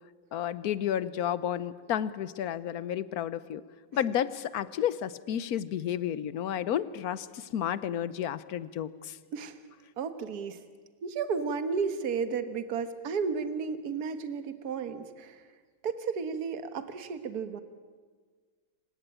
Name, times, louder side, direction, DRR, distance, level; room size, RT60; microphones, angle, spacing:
voice 1, 0.3-3.6 3.9-9.2, left 10 dB, 60° left, 16 dB, 1.2 m, -31 dB
voice 2, 10.0-10.6 11.0-15.4 15.8-17.6, right 5 dB, 55° right, 10 dB, 1.7 m, -33 dB
27.0 x 17.0 x 8.8 m, 1.5 s
omnidirectional pair, 2.0 m